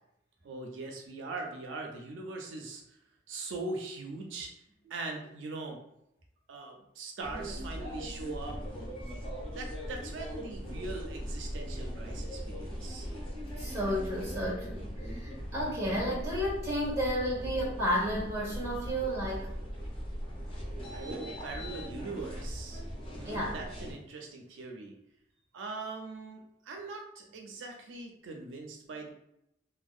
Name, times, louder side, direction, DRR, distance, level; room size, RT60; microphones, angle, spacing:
voice 1, 0.4-3.0 3.3-4.5 4.9-5.8 6.5-8.6 9.1-13.1 20.9-22.8 23.1-25.0 25.5-29.1, right 3 dB, 85° right, 2 dB, 0.4 m, -41 dB
sound 1, 7.2-23.9, equal, 30° left, 0.7 m, -39 dB
voice 2, 13.4-19.5 23.2-23.5, equal, 15° right, -5 dB, 1.1 m, -32 dB
2.6 x 2.0 x 2.3 m, 0.80 s
head